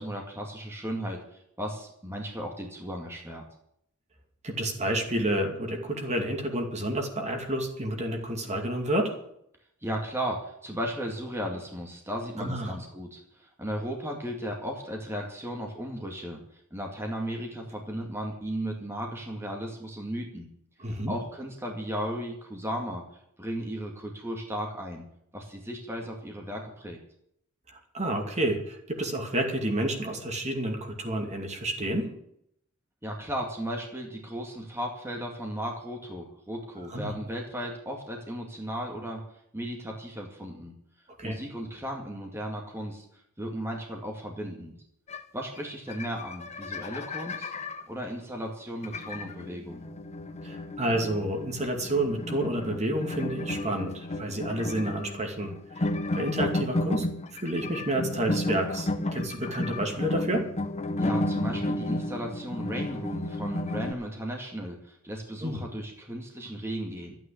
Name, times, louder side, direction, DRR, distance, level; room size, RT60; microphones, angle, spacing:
voice 1, 0.0-3.4 9.8-20.5 20.9-23.0 23.4-25.1 25.3-27.0 33.0-39.3 39.5-40.7 41.2-44.8 45.3-47.5 47.9-49.9 61.0-67.2, equal, 10° right, 1 dB, 2.1 m, -35 dB
voice 2, 4.4-9.2 12.4-12.7 20.8-21.1 27.7-32.1 36.9-37.1 41.2-41.4 50.4-57.1 57.3-60.5 65.4-65.6, right 1 dB, 30° right, 3 dB, 2.5 m, -30 dB
sound 1, 45.1-45.2 45.6-45.7 45.9-47.8 48.8-63.9, left 1 dB, 30° left, 0.9 m, -32 dB
13.5 x 9.3 x 8.5 m, 0.73 s
head